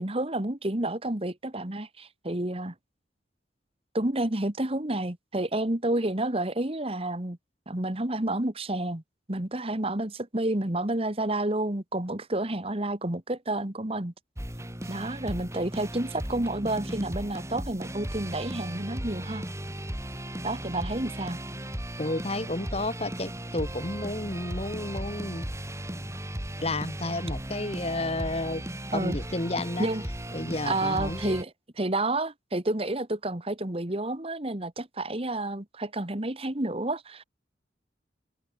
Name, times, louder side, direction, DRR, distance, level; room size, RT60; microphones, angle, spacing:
voice 1, 0.0-2.7 3.9-7.4 7.7-9.0 9.3-14.1 14.9-19.4 20.4-21.4 28.9-29.2 29.8-30.0 30.6-31.5 31.8-37.2, right 1 dB, 30° right, 1.7 m, -30 dB
sound 1, 14.4-31.4, right 1 dB, 15° right, 4.3 m, -36 dB
voice 2, 22.0-25.5 26.6-28.6 28.9-29.9 30.3-31.4, left 2 dB, 35° left, 2.2 m, -31 dB
open air
head